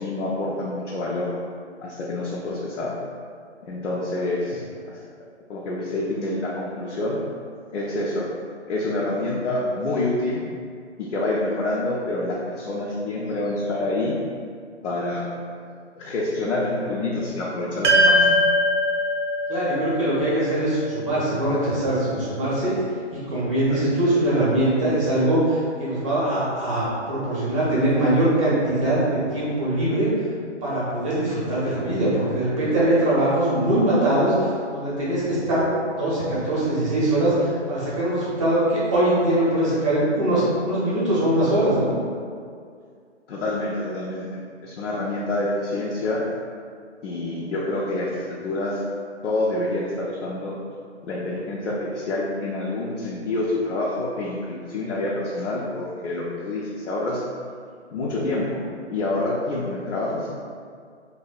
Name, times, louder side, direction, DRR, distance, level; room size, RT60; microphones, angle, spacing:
voice 1, 0.0-1.3 1.8-2.9 3.6-5.0 5.5-7.2 7.7-8.3 8.7-10.4 11.0-14.2 14.8-15.3 16.0-18.4 23.7-24.0 43.3-46.2 47.0-48.8 49.2-50.5 51.0-57.2 57.9-60.3, left 2 dB, 80° left, -5 dB, 0.5 m, -27 dB
sound 1, 17.8-22.3, equal, 85° right, 0.6 m, -22 dB
voice 2, 19.5-22.7 23.1-30.3 30.6-41.9, right 1 dB, 30° right, -9 dB, 0.7 m, -22 dB
2.6 x 2.1 x 2.3 m, 2.2 s
hypercardioid pair, 150°, 36 cm